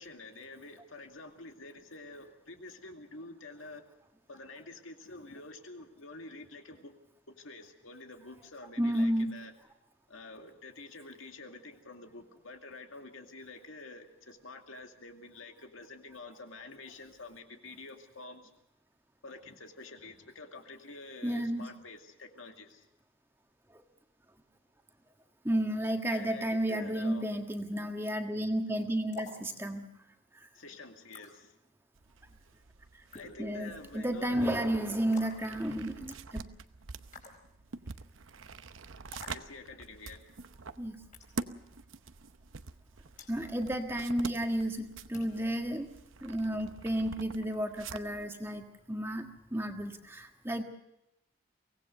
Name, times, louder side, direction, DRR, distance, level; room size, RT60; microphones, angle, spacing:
voice 1, 0.0-3.8 4.3-6.9 7.3-9.5 10.1-18.5 19.2-22.9 26.1-27.3 30.5-31.6 33.1-34.6 39.3-40.3, left 3 dB, 85° left, 4 dB, 2.3 m, -48 dB
voice 2, 8.8-9.3 21.2-21.7 23.7-23.8 25.4-29.8 30.3-30.5 32.9-33.0 33.4-36.4 40.8-41.0 43.3-45.9 46.2-50.6, right 1 dB, 10° right, 4 dB, 1.5 m, -32 dB
sound 1, 29.1-29.4 31.1-31.3 33.1-33.4 35.1-35.5 37.1-37.4 39.1-39.4 41.1-41.3 43.2-43.4 45.1-45.4, left 3 dB, 40° left, 4.5 m, -47 dB
sound 2, 31.9-48.3, right 4 dB, 85° right, 0.9 m, -46 dB
24.0 x 18.0 x 6.6 m, 0.84 s
head